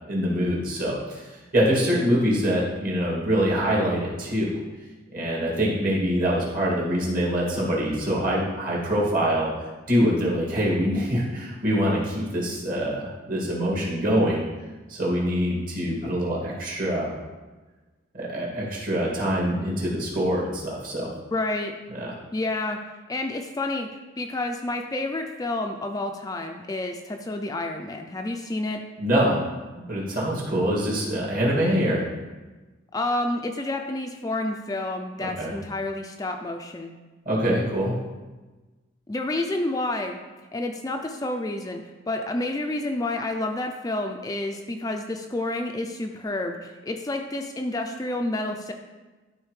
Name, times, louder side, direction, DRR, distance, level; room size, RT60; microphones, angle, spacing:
voice 1, 0.1-4.6 5.1-9.5 9.9-14.4 14.9-17.1 18.1-21.1 22.0-22.1 29.0-29.4 29.8-32.1 35.2-35.5 37.3-38.0, equal, 45° right, -5 dB, 2.2 m, -24 dB
voice 2, 21.3-21.7 22.3-22.8 23.1-23.9 24.2-28.8 32.9-36.9 39.1-40.2 40.5-48.7, left 2 dB, 20° left, 4 dB, 0.3 m, -29 dB
12.5 x 4.1 x 3.2 m, 1.2 s
head